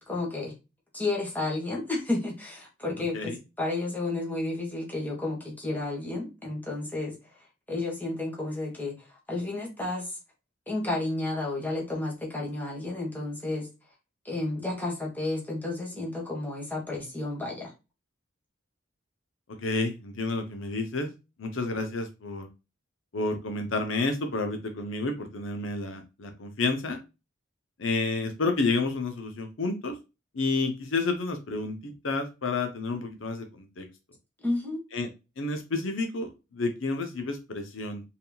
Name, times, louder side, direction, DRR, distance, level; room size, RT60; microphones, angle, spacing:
voice 1, 0.1-0.5 0.9-7.1 7.7-8.9 9.3-10.0 10.7-13.7 14.2-17.7 34.4-34.8, left 2 dB, 10° left, 1.6 m, -31 dB
voice 2, 19.6-21.1 21.4-22.5 23.1-27.0 27.8-30.0 30.3-33.8 34.9-35.1 35.4-38.0, left 3 dB, 80° left, 0.8 m, -30 dB
4.5 x 3.6 x 2.4 m
head